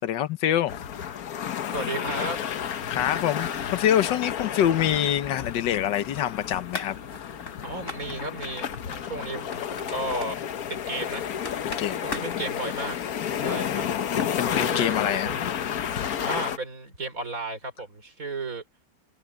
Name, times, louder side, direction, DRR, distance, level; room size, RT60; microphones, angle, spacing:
voice 1, 0.0-0.7 2.9-6.9 11.8-12.0 12.3-12.4 13.5-14.1 14.4-15.3, left 10 dB, 80° left, 1.6 m, -26 dB
sound 1, 0.7-16.6, left 9 dB, 60° left, 1.4 m, -31 dB
voice 2, 1.7-2.4 7.6-10.4 10.7-11.3 12.0-13.0 13.4-13.9 14.4-15.3 16.2-18.6, right 2 dB, 50° right, 5.2 m, -34 dB
sound 2, 6.3-14.7, left 2 dB, 45° left, 4.2 m, -42 dB
omnidirectional pair, 1.9 m